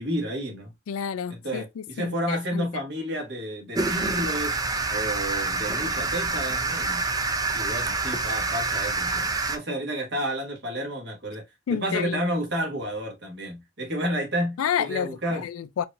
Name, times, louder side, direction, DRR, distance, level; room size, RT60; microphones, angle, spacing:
voice 1, 0.0-0.7 1.3-4.6 4.9-7.0 7.5-15.4, equal, 55° right, 1.5 m, -31 dB
voice 2, 0.9-2.7 11.7-12.2 14.6-15.9, left 8 dB, 80° left, 0.3 m, -30 dB
sound 1, 3.7-9.6, right 3 dB, 20° right, 0.4 m, -27 dB
4.5 x 2.6 x 2.4 m
head